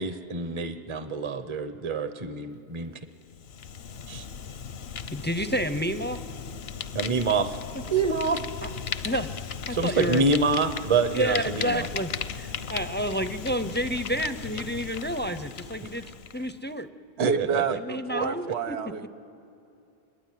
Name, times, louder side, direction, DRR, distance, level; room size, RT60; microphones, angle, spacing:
voice 1, 0.0-3.0 4.1-4.2 6.9-7.6 7.9-8.4 9.7-11.9 17.2-17.8 18.2-18.3, right 4 dB, 30° right, 9 dB, 0.8 m, -26 dB
Fire, 3.2-16.6, left 6 dB, 75° left, 1.0 m, -37 dB
voice 2, 5.1-6.2 7.7-7.9 8.6-8.7 9.0-9.3 9.7-10.3 11.1-16.0 16.3-16.9 17.7-18.8, equal, 15° left, 11 dB, 0.5 m, -29 dB
voice 3, 17.2-19.1, right 6 dB, 90° right, 7 dB, 1.1 m, -29 dB
28.5 x 22.0 x 9.3 m, 2.7 s
omnidirectional pair, 1.1 m